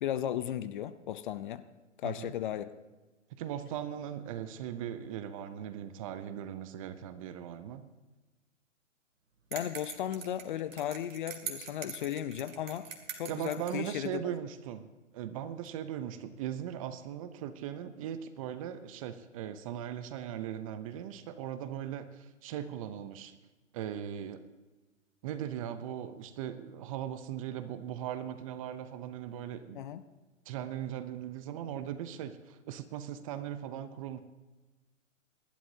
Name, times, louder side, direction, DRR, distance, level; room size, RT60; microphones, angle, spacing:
voice 1, 0.0-1.7 2.0-2.7 9.5-14.2 29.7-30.0, left 11 dB, 40° left, 13 dB, 0.6 m, -35 dB
voice 2, 3.3-7.9 13.3-23.3 23.7-24.4 25.2-29.8 30.5-34.2, right 10 dB, 25° right, 12 dB, 0.6 m, -39 dB
sound 1, 9.5-13.9, right 6 dB, 70° right, 2.3 m, -43 dB
28.5 x 11.5 x 2.8 m, 1.2 s
hypercardioid pair, 135°, 39 cm